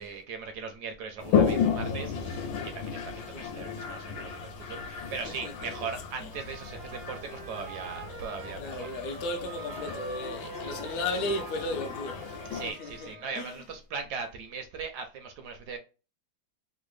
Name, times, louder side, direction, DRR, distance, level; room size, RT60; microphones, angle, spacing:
voice 1, 0.0-2.5 2.7-8.9 12.5-15.8, right 5 dB, 70° right, 1.0 m, -39 dB
Toilet flush, 1.2-12.7, left 7 dB, 90° left, 1.5 m, -33 dB
voice 2, 5.0-5.7 6.2-6.3 8.6-13.6, left 2 dB, 65° left, 0.9 m, -36 dB
Trumpet, 6.3-13.6, right 4 dB, 90° right, 0.5 m, -44 dB
3.6 x 2.1 x 3.1 m
omnidirectional pair, 2.1 m